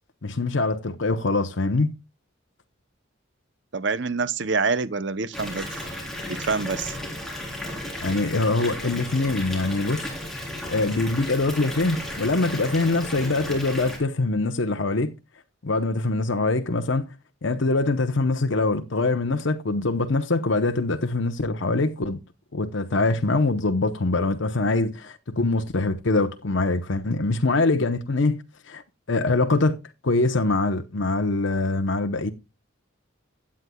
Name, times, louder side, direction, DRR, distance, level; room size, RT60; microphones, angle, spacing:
voice 1, 0.2-1.9 8.0-10.1 10.7-15.1 15.6-17.1 17.4-22.2 22.5-28.8 29.1-29.8 30.0-32.3, left 2 dB, 65° left, 0.8 m, -23 dB
voice 2, 3.7-5.7 6.3-7.0, right 4 dB, 60° right, 0.7 m, -26 dB
Water tap faucet / Bathtub (filling or washing) / Fill (with liquid), 5.3-14.0, left 1 dB, ahead, 3.8 m, -34 dB
16.0 x 9.4 x 2.3 m
head